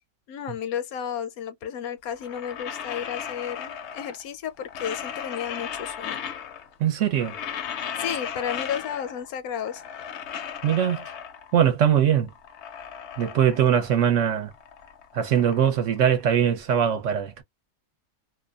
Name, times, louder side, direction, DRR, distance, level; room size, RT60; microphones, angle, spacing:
voice 1, 0.3-6.2 8.0-9.8, left 8 dB, 80° left, 1.1 m, -32 dB
sound 1, 2.1-4.3 4.6-6.8 7.0-9.3 9.6-11.6 12.1-14.1 14.4-16.6, left 8 dB, 65° left, 0.7 m, -36 dB
voice 2, 6.8-7.3 10.6-11.0 11.5-12.3 13.2-14.5 15.1-17.4, right 9 dB, 65° right, 0.9 m, -21 dB
2.6 x 2.1 x 2.3 m
omnidirectional pair, 1.5 m